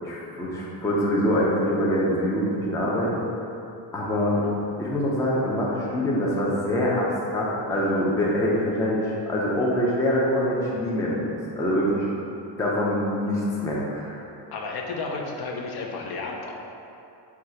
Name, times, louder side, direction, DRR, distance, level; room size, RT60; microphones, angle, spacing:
voice 1, 0.0-3.2 3.9-4.5 4.8-12.1 12.6-14.2, equal, 10° left, -5 dB, 0.4 m, -24 dB
voice 2, 14.5-16.5, left 3 dB, 55° left, 0 dB, 0.6 m, -32 dB
3.7 x 2.4 x 4.3 m, 2.8 s
cardioid pair, 130°, 46 cm